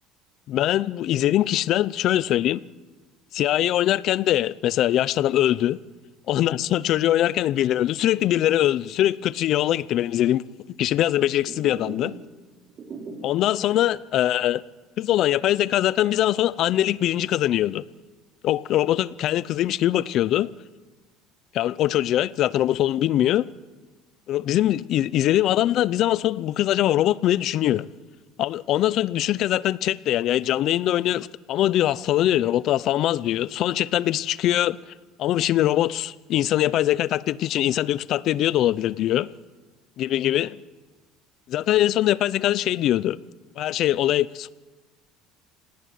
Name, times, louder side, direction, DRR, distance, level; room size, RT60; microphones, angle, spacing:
voice 1, 0.5-2.6 3.3-5.8 6.3-10.4 10.8-12.1 13.2-14.6 15.0-17.8 18.4-20.5 21.5-23.5 24.3-27.9 28.4-34.8 35.2-39.3 40.0-40.6 41.5-43.2 43.6-44.5, left 13 dB, 50° left, 0.7 m, -22 dB
sound 1, 11.5-12.4 12.6-13.5 13.9-14.0 14.4-14.5 15.0-16.4 16.7-17.4, right 4 dB, 35° right, 3.8 m, -41 dB
27.0 x 18.5 x 9.5 m
cardioid pair, 135°, 0 cm